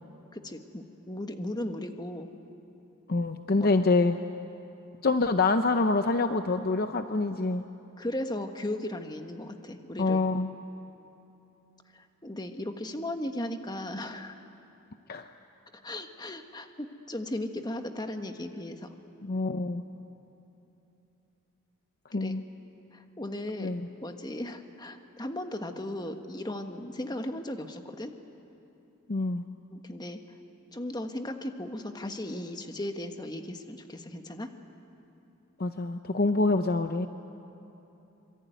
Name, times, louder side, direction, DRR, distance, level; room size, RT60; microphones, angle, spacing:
voice 1, 0.3-2.3 3.6-3.7 8.0-10.2 11.9-14.4 15.8-18.9 22.2-22.4 22.9-23.7 24.0-28.1 29.7-30.2 30.7-34.5, left 1 dB, 20° left, 6 dB, 1.4 m, -36 dB
voice 2, 3.1-4.2 5.0-7.6 10.0-10.5 15.1-15.3 19.2-19.8 22.1-22.4 23.6-23.8 29.1-29.4 35.6-37.1, left 3 dB, 45° left, 8 dB, 0.7 m, -26 dB
26.5 x 23.5 x 9.2 m, 3.0 s
head